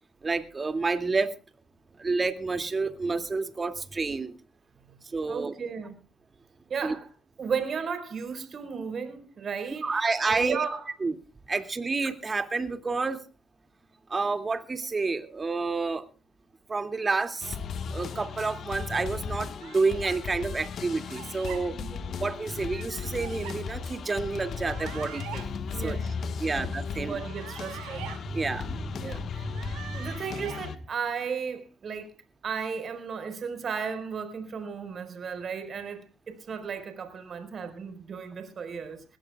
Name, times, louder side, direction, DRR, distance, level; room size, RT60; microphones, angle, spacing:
voice 1, 0.2-1.3 2.0-4.3 5.1-5.5 6.8-6.9 9.8-10.7 11.0-11.1 11.5-13.2 14.1-16.0 16.7-17.6 17.9-21.8 22.2-25.4 25.8-26.0 26.4-27.2 28.3-30.1, right 3 dB, 35° right, 2.5 m, -29 dB
voice 2, 5.3-5.9 6.7-7.1 7.4-10.9 21.7-22.2 25.7-28.1 29.0-29.4 29.9-32.1 32.4-39.0, right 6 dB, 55° right, 4.7 m, -35 dB
sound 1, 17.4-30.8, left 6 dB, 60° left, 1.5 m, -36 dB
sound 2, 19.6-20.2 21.0-21.6 22.7-23.6 24.6-25.5 27.1-28.2 29.3-30.6, right 11 dB, 85° right, 4.7 m, -44 dB
22.0 x 16.5 x 2.4 m
supercardioid pair, 60°, 0 cm